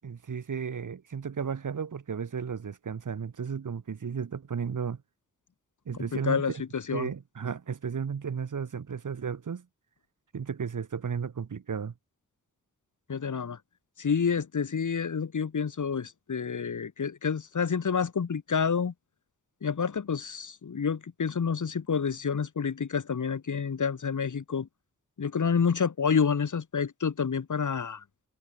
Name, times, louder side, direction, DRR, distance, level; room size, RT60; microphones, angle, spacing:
voice 1, 0.0-5.0 5.8-6.6 6.9-9.7 10.3-11.9, right 6 dB, 75° right, 6.6 m, -34 dB
voice 2, 6.1-7.1 13.1-13.6 14.0-18.9 19.6-24.7 25.2-28.0, left 6 dB, 70° left, 5.7 m, -28 dB
cardioid pair, 45°, 31 cm